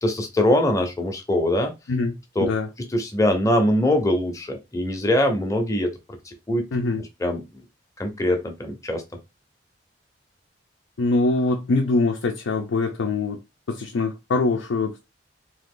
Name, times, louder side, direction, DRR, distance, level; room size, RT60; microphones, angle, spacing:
voice 1, 0.0-1.7 2.4-2.5 2.8-5.9 6.3-6.6 7.0-7.4 8.0-9.0, left 1 dB, 15° left, 0.6 m, -22 dB
voice 2, 1.9-2.7 6.7-7.0 11.0-13.4 13.7-15.0, left 3 dB, 90° left, 0.5 m, -23 dB
2.9 x 2.5 x 3.7 m
head